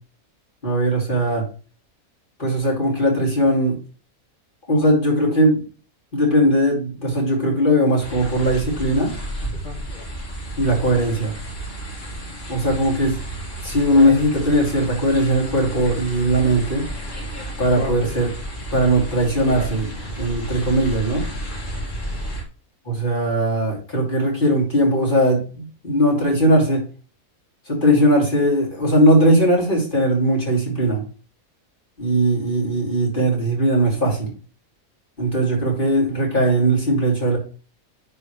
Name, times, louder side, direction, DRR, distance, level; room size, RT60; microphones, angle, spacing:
voice 1, 0.6-1.5 2.4-3.8 4.7-5.6 6.1-9.1 10.6-11.3 12.5-13.2 13.6-16.9 17.6-18.3 18.7-21.3 22.9-26.8 27.7-31.0 32.0-34.3 35.2-37.4, right 1 dB, 35° left, -3 dB, 3.3 m, -19 dB
sound 1, 8.0-22.4, equal, 60° left, 2.5 m, -31 dB
11.0 x 4.8 x 3.4 m, 0.38 s
omnidirectional pair, 1.5 m